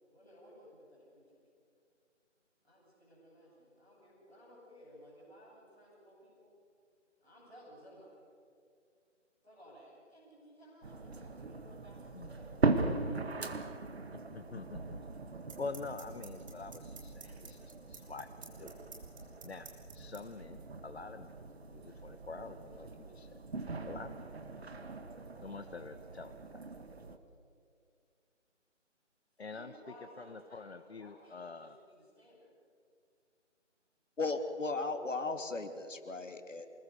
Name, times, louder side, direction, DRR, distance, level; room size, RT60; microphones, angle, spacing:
voice 1, 0.1-1.5 2.6-6.5 7.2-8.3 9.4-12.7 14.8-14.9 29.4-32.5, equal, ahead, -21 dB, 0.9 m, -57 dB
sound 1, 10.8-27.2, right 3 dB, 55° right, 2.0 m, -40 dB
voice 2, 14.1-15.0 15.6-18.3 18.6-18.8 19.4-19.7 19.9-21.3 21.7-23.3 23.9-24.3 25.4-26.4 29.4-29.7 30.2-31.8, left 4 dB, 55° left, 9 dB, 1.1 m, -46 dB
sound 2, 14.4-14.5 15.5-20.2, right 5 dB, 25° right, 2.9 m, -49 dB
voice 3, 34.2-36.7, left 3 dB, 80° left, 7 dB, 2.9 m, -36 dB
27.0 x 20.0 x 6.8 m, 2.4 s
figure-of-eight pair, 170°, 37 cm